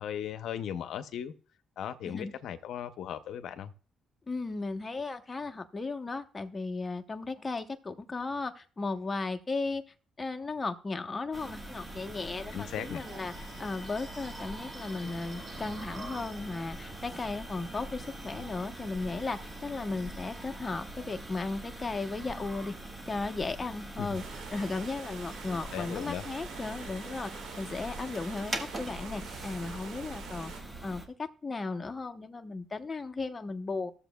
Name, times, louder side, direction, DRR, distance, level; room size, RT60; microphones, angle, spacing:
voice 1, 0.0-1.3 1.8-3.7 12.5-13.0 24.0-24.1 25.5-26.2, left 9 dB, 75° left, 0.6 m, -37 dB
voice 2, 4.3-9.8 10.2-13.3 13.6-22.7 23.1-24.2 24.5-33.9, left 3 dB, 25° left, 0.8 m, -36 dB
sound 1, 11.3-31.0, right 1 dB, 20° right, 1.6 m, -43 dB
sound 2, 13.0-29.7 30.1-30.4 30.9-31.1, right 2 dB, 40° right, 1.5 m, -54 dB
sound 3, 24.1-30.6, right 6 dB, 90° right, 1.7 m, -46 dB
14.5 x 7.1 x 2.3 m
cardioid pair, 90°, 0 cm